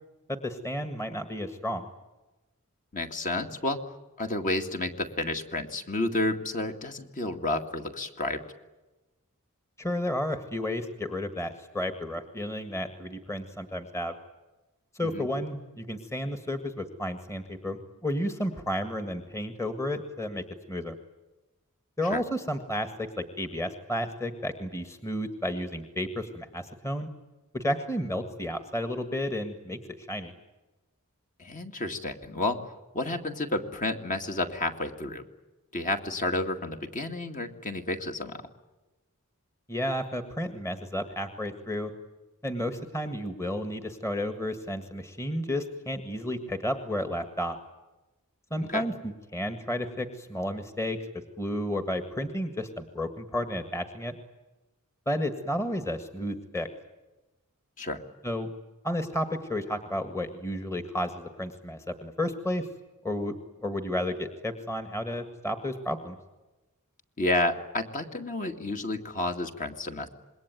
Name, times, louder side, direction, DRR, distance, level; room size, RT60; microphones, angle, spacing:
voice 1, 0.3-1.9 9.8-14.1 14.9-21.0 22.0-27.1 27.5-30.3 39.7-41.9 42.4-47.6 48.5-51.0 51.4-54.2 55.1-56.7 58.2-58.5 58.8-62.7 63.0-63.3 63.6-66.2, left 1 dB, 15° left, 8 dB, 1.8 m, -32 dB
voice 2, 2.9-3.8 4.2-8.4 15.0-15.3 22.1-22.2 31.4-32.6 32.9-35.2 35.7-38.4 48.7-48.9 57.8-58.0 67.2-70.1, left 2 dB, 35° left, 5 dB, 2.3 m, -30 dB
27.0 x 21.5 x 9.3 m, 1.1 s
head